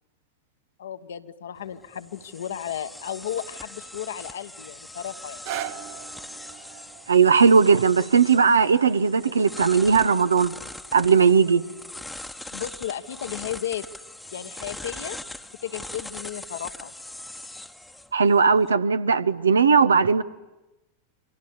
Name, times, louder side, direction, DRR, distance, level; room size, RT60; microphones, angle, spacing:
voice 1, 0.8-5.5 12.5-13.8 14.3-15.2 15.6-16.9, left 10 dB, 65° left, 9 dB, 1.2 m, -34 dB
sound 1, 1.5-18.7, left 1 dB, 5° left, 1.2 m, -41 dB
sound 2, 5.2-11.3 11.9-12.0, right 11 dB, 50° right, 1.0 m, -41 dB
voice 2, 7.1-10.5 10.9-11.6 18.1-20.2, right 5 dB, 75° right, 12 dB, 1.0 m, -18 dB
28.5 x 24.0 x 8.6 m, 1.0 s
figure-of-eight pair, 90°, 0 cm